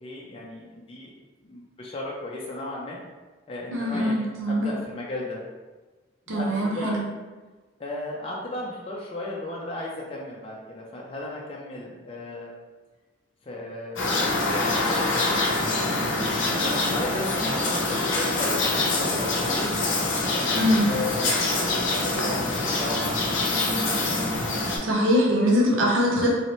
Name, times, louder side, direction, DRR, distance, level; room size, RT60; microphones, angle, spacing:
voice 1, 0.0-1.1 1.4-3.0 3.5-5.4 6.3-7.0 7.8-12.5 13.4-19.8 20.3-23.7, left 2 dB, 30° left, -3 dB, 0.4 m, -35 dB
voice 2, 3.7-4.7 6.3-7.0 20.5-20.9 24.8-26.3, equal, 75° right, -2 dB, 0.6 m, -22 dB
sound 1, 14.0-24.8, left 2 dB, 70° left, 0.6 m, -25 dB
3.1 x 2.8 x 2.9 m, 1.3 s
head